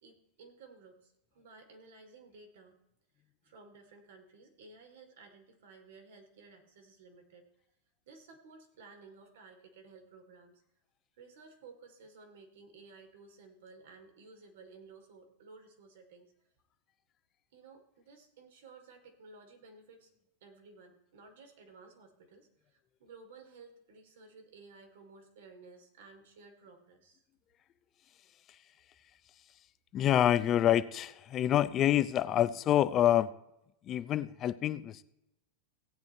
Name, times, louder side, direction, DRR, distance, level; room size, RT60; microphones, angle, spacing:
voice 1, 0.0-2.8 3.4-7.5 8.1-10.6 11.2-16.3 17.5-20.1 20.4-27.2, right 4 dB, 75° right, 4 dB, 2.7 m, -55 dB
voice 2, 29.9-33.3 33.8-35.0, left 11 dB, 30° left, 13 dB, 0.5 m, -27 dB
16.5 x 8.2 x 4.3 m, 0.88 s
supercardioid pair, 140°, 0 cm